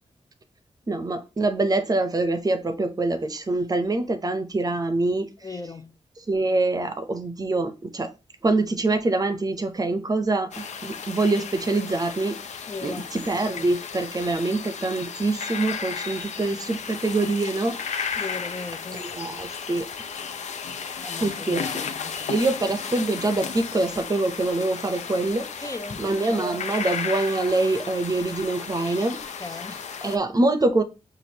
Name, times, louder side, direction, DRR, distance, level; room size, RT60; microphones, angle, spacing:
voice 1, 0.9-5.3 6.3-8.1 8.4-12.4 12.8-18.2 19.0-19.9 21.2-21.8 22.3-25.5 26.0-29.2 30.0-30.8, right 2 dB, 30° right, 0.6 m, -25 dB
voice 2, 5.4-6.0 12.7-13.1 18.2-19.1 21.0-22.5 25.6-26.1 29.4-29.8, left 3 dB, 30° left, 0.4 m, -37 dB
sound 1, 10.5-30.2, left 6 dB, 75° left, 0.5 m, -34 dB
6.0 x 2.5 x 2.8 m
wide cardioid pair, 115°, 12 cm